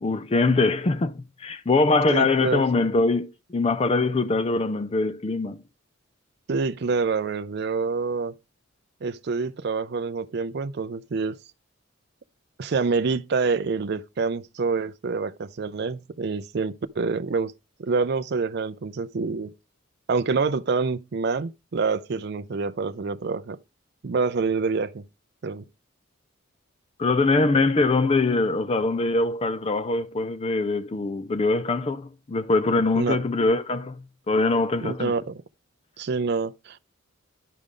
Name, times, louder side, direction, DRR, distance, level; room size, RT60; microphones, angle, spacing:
voice 1, 0.0-5.6 27.0-34.0 34.3-35.1, left 3 dB, 30° left, 0.4 m, -23 dB
voice 2, 2.1-2.6 6.5-8.4 9.0-11.4 12.6-17.5 17.8-19.5 20.1-23.6 24.0-25.0 25.4-25.6 33.0-33.2 34.8-35.4 36.0-36.8, right 4 dB, 50° right, 0.4 m, -26 dB
11.0 x 5.0 x 3.7 m
head